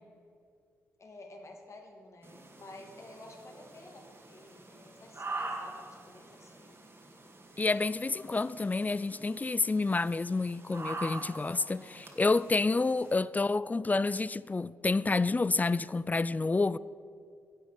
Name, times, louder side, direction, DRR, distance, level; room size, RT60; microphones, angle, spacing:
voice 1, 1.0-6.7 11.5-12.0 12.7-13.5, left 2 dB, 45° left, 2.2 m, -52 dB
sound 1, 2.2-13.1, right 2 dB, 35° right, 2.2 m, -45 dB
voice 2, 7.6-16.8, left 3 dB, 25° left, 0.4 m, -29 dB
10.0 x 8.1 x 6.7 m
hypercardioid pair, 40°, 7 cm